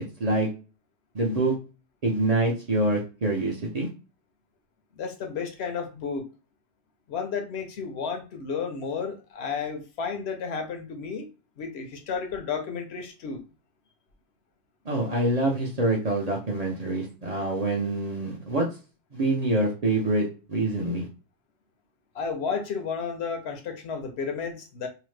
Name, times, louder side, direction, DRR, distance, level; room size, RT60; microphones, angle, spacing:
voice 1, 1.1-1.5 2.0-3.9 14.9-18.6 19.1-21.1, right 2 dB, 45° right, -2 dB, 0.6 m, -25 dB
voice 2, 5.0-6.3 7.1-11.3 11.6-13.4 22.1-24.9, left 5 dB, 70° left, 5 dB, 0.8 m, -32 dB
2.8 x 2.0 x 3.1 m, 0.33 s
omnidirectional pair, 1.2 m